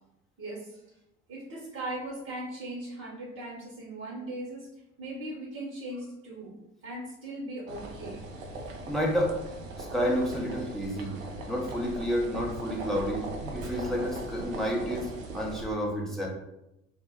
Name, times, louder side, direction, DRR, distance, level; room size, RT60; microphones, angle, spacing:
voice 1, 0.4-0.8 1.3-4.7 5.0-8.2, right 1 dB, 40° right, -6 dB, 0.9 m, -39 dB
sound 1, 7.7-15.6, right 2 dB, 80° right, 0.5 m, -39 dB
voice 2, 8.9-9.4 9.8-11.2 11.5-16.3, equal, ahead, -3 dB, 0.6 m, -30 dB
2.1 x 2.0 x 3.6 m, 0.88 s
figure-of-eight pair, 55°, 40 cm